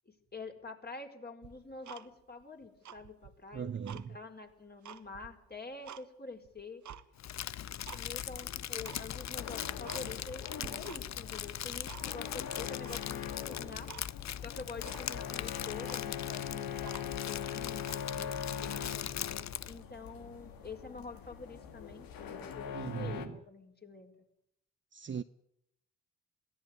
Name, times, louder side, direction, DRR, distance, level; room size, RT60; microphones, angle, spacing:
voice 1, 0.1-6.8 7.9-13.9 14.4-19.0 19.6-24.1, left 3 dB, 25° left, 4.8 m, -47 dB
Tick-tock, 1.4-2.4 2.8-4.1 4.5-6.1 6.4-7.0 7.5-8.0 8.3-8.4 8.8-9.0 9.4-9.5 9.8-10.4 10.6-11.3 11.5-12.3 12.9-13.4 13.9-14.1 14.4-14.5 14.8-15.1 15.6-15.7 15.8-17.3 17.8-18.1, right 9 dB, 55° right, 1.6 m, -50 dB
voice 2, 3.5-4.2 22.7-23.4 24.9-25.2, right 7 dB, 30° right, 0.9 m, -39 dB
Crumpling crinkling, 7.2-19.8, left 11 dB, 50° left, 0.8 m, -40 dB
sound 1, 9.1-23.3, left 8 dB, 70° left, 2.5 m, -42 dB
22.5 x 16.0 x 9.5 m
hypercardioid pair, 45°, 36 cm